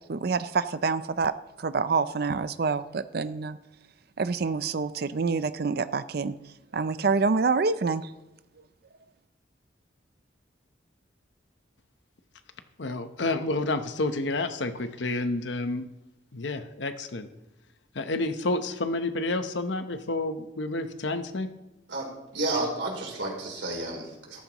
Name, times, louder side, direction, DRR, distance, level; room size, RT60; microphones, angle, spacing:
voice 1, 0.0-1.3 1.6-3.6 4.2-6.3 6.7-8.1, right 4 dB, 55° right, 13 dB, 0.5 m, -27 dB
voice 2, 12.8-15.8 16.3-17.3 17.9-21.5, left 2 dB, 75° left, 9 dB, 0.9 m, -29 dB
voice 3, 21.9-24.4, right 2 dB, 75° right, 0 dB, 3.5 m, -31 dB
14.0 x 13.5 x 3.0 m, 0.94 s
head